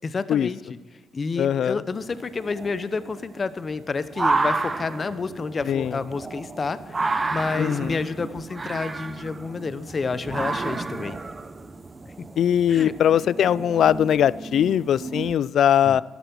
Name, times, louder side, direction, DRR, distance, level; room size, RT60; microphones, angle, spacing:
voice 1, 0.0-0.8 1.1-11.2 12.2-12.3 12.7-12.9 15.8-16.0, left 4 dB, 35° left, 14 dB, 0.8 m, -29 dB
voice 2, 1.4-1.8 5.7-6.0 7.6-8.1 12.4-16.0, left 9 dB, 65° left, 21 dB, 0.3 m, -21 dB
sound 1, 1.9-15.3, right 3 dB, 25° right, 0.9 m, -31 dB
12.5 x 11.5 x 6.1 m, 1.4 s
cardioid pair, 90°, 0 cm